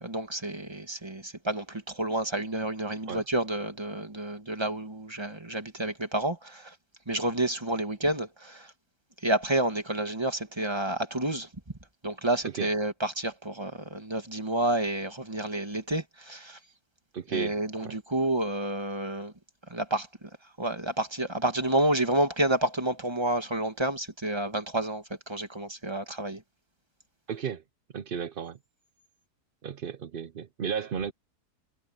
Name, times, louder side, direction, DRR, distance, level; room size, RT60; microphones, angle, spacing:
voice 1, 0.0-6.7 7.1-8.7 9.2-11.5 12.0-16.6 17.3-19.3 19.7-20.1 20.6-26.4, right 1 dB, 15° right, 2.3 m, -29 dB
voice 2, 17.1-17.6 17.8-18.0 27.3-27.6 27.9-28.6 29.6-31.1, right 7 dB, 55° right, 0.6 m, -34 dB
omnidirectional pair, 1.7 m